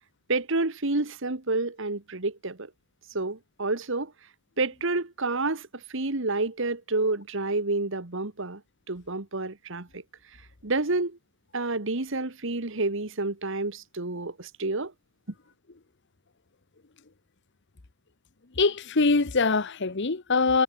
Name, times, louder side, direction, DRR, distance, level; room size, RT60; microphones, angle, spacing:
voice 1, 0.3-2.7 3.1-4.1 4.6-8.6 8.9-10.0 10.6-11.2 11.5-14.9, right 2 dB, 65° right, 1.8 m, -29 dB
voice 2, 18.6-20.6, left 4 dB, 55° left, 1.1 m, -23 dB
head